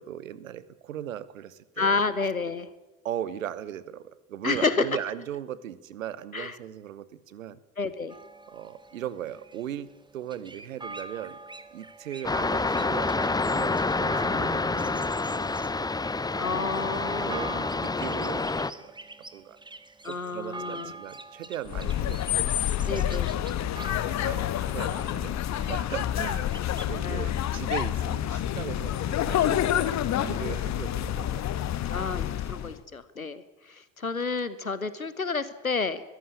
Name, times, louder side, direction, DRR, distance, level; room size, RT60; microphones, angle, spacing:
voice 1, 0.0-2.0 3.0-7.6 8.5-11.4 11.7-16.2 17.0-18.9 19.3-19.6 20.0-22.5 23.1-23.2 24.2-26.5 26.8-29.9 30.1-31.4, right 11 dB, 75° right, 18 dB, 1.1 m, -38 dB
voice 2, 1.8-2.7 4.4-4.9 6.3-6.6 7.8-8.2 16.4-17.5 20.0-20.9 22.9-23.3 27.0-27.3 31.9-36.0, left 4 dB, 90° left, 15 dB, 1.0 m, -30 dB
sound 1, 8.1-26.9, right 2 dB, 10° right, 1.4 m, -45 dB
sound 2, 12.2-18.7, left 3 dB, 10° left, 0.8 m, -28 dB
sound 3, 21.7-32.8, left 11 dB, 40° left, 1.3 m, -28 dB
22.0 x 14.5 x 9.7 m, 1.1 s
figure-of-eight pair, 55°, 41 cm